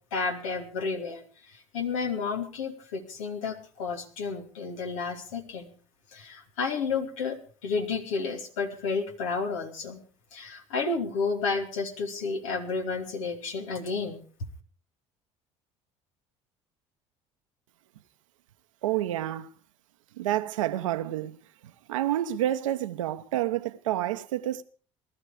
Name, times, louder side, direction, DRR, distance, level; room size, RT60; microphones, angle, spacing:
voice 1, 0.1-5.7 6.1-10.0 10.3-14.2, left 4 dB, 80° left, 2.7 m, -31 dB
voice 2, 18.8-19.5 20.1-21.4 21.9-24.6, right 13 dB, 85° right, 1.0 m, -29 dB
19.0 x 13.0 x 5.0 m
hypercardioid pair, 65°, 16 cm